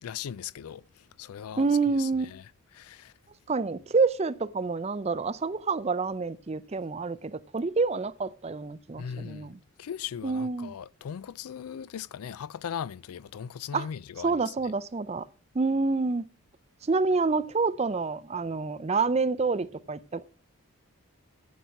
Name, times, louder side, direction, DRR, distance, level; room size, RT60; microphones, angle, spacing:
voice 1, 0.0-1.7 2.0-2.4 2.7-3.1 9.0-9.5 9.8-14.5, left 8 dB, 90° left, 0.4 m, -38 dB
voice 2, 1.6-2.3 3.5-9.6 10.2-10.7 13.7-13.9 14.2-15.3 15.5-16.3 16.8-20.2, right 4 dB, 30° right, 0.4 m, -28 dB
10.0 x 7.5 x 5.3 m
head